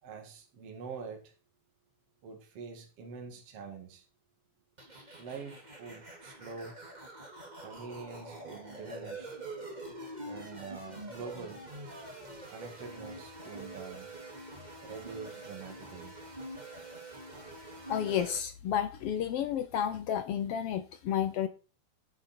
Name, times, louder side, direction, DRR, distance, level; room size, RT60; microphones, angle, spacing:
voice 1, 0.0-1.3 2.2-4.0 5.2-6.8 7.6-9.4 10.3-11.7 12.5-14.1 14.8-16.2, right 5 dB, 50° right, 3 dB, 2.9 m, -45 dB
sound 1, 4.8-18.4, right 1 dB, 15° right, 2.1 m, -45 dB
voice 2, 17.9-21.5, left 9 dB, 85° left, 11 dB, 1.3 m, -31 dB
10.0 x 8.5 x 4.5 m, 0.33 s
omnidirectional pair, 3.6 m